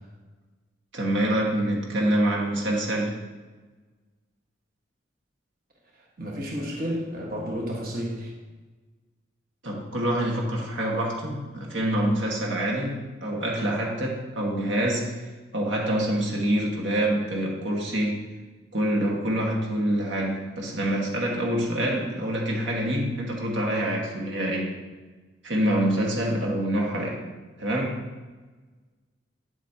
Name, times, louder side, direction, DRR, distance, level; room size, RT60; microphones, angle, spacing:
voice 1, 0.9-3.2 9.6-15.2 15.5-18.2 18.7-24.8 25.4-27.2 27.6-28.0, right 1 dB, 75° right, -2 dB, 1.6 m, -26 dB
voice 2, 6.2-8.3, equal, 50° right, -2 dB, 1.5 m, -31 dB
9.5 x 8.3 x 2.9 m, 1.3 s
head